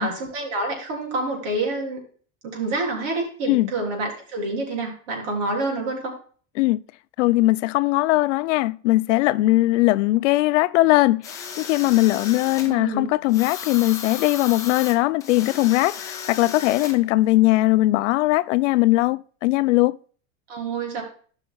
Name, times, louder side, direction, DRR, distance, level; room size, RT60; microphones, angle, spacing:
voice 1, 0.0-2.0 2.4-6.2 12.6-13.1 20.5-21.0, right 2 dB, 70° right, 3.7 m, -27 dB
voice 2, 7.2-20.0, left 18 dB, 70° left, 0.5 m, -20 dB
sound 1, 11.2-12.7 13.3-17.0, left 6 dB, 10° left, 0.5 m, -35 dB
15.5 x 5.8 x 2.3 m
supercardioid pair, 180°, 38 cm